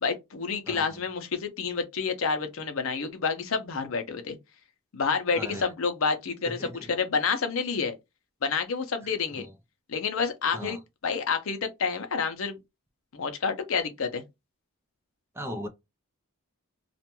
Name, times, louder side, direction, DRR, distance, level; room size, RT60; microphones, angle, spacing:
voice 1, 0.0-4.4 4.9-7.9 8.4-9.5 9.9-10.8 11.0-12.6 13.1-14.2, left 5 dB, 65° left, 0.6 m, -29 dB
voice 2, 0.7-1.0 5.3-5.7 6.5-6.9 9.0-9.5 10.5-10.8 15.3-15.7, equal, 10° right, 0.4 m, -39 dB
2.4 x 2.2 x 2.9 m
head